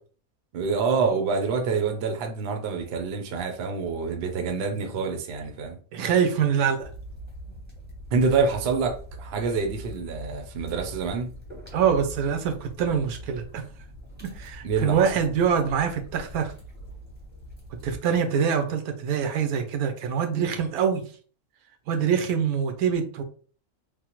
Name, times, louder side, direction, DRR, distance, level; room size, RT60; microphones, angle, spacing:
voice 1, 0.5-5.8 8.1-11.3 14.6-15.1, right 5 dB, 60° right, 5 dB, 0.7 m, -26 dB
voice 2, 5.9-6.9 11.7-13.6 14.2-16.5 17.8-21.0 21.9-23.2, right 7 dB, 85° right, 6 dB, 1.1 m, -24 dB
sound 1, 6.8-18.0, right 1 dB, 10° right, 0.7 m, -42 dB
3.4 x 2.0 x 2.9 m, 0.41 s
omnidirectional pair, 1.5 m